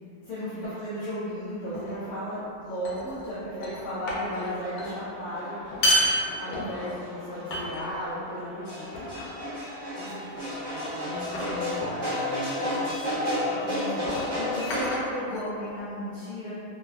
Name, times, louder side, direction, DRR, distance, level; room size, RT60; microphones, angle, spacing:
voice 1, 0.2-5.6 6.3-8.9 13.6-16.5, equal, 65° left, -12 dB, 0.8 m, -35 dB
sound 1, 1.7-2.0 2.8-3.3 3.6-4.5 4.8-5.0 5.6-7.0 7.5-8.1 8.9-9.4 10.3-10.7 11.3-11.7 12.9-13.1 14.0-15.8, equal, 85° left, 1.1 m, -30 dB
sound 2, 4.3-14.9, left 1 dB, 45° right, 0.6 m, -33 dB
voice 2, 9.9-13.3, right 1 dB, 75° right, -5 dB, 1.0 m, -41 dB
3.2 x 2.0 x 2.3 m, 2.7 s
omnidirectional pair, 1.6 m